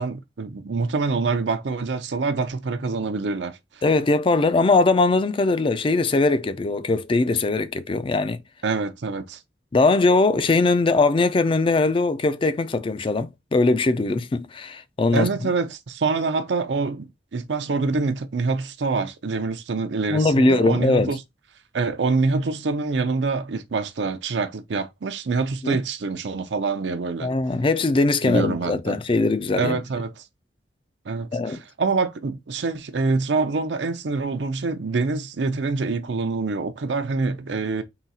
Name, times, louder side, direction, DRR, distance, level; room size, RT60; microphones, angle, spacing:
voice 1, 0.0-3.6 8.6-9.4 15.1-21.2 21.7-27.3 28.2-29.0 29.6-30.2 31.1-37.8, right 4 dB, 85° right, 0.6 m, -25 dB
voice 2, 3.8-8.4 9.7-15.5 20.1-21.1 25.6-25.8 27.2-29.8 31.3-31.6, left 3 dB, 30° left, 0.4 m, -21 dB
3.9 x 2.3 x 4.1 m
head